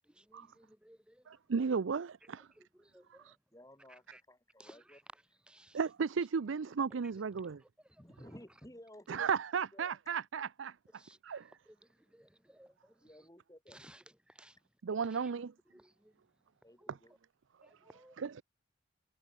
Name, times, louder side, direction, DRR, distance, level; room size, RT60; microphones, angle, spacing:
voice 1, 0.0-1.4 2.5-3.3 3.9-4.2 4.6-5.8 7.6-8.4 10.9-13.3 13.7-14.6 14.9-15.3 15.7-16.2 16.8-17.2 17.6-18.2, right 1 dB, 5° right, 1.5 m, -60 dB
voice 2, 1.3-2.5 3.1-3.4 5.7-7.6 9.1-11.5 14.8-15.5 16.9-17.0 18.2-18.4, right 6 dB, 85° right, 0.5 m, -35 dB
voice 3, 3.5-5.0 8.0-9.3 9.7-10.0 13.0-14.0 16.6-17.1, equal, 15° left, 3.0 m, -55 dB
head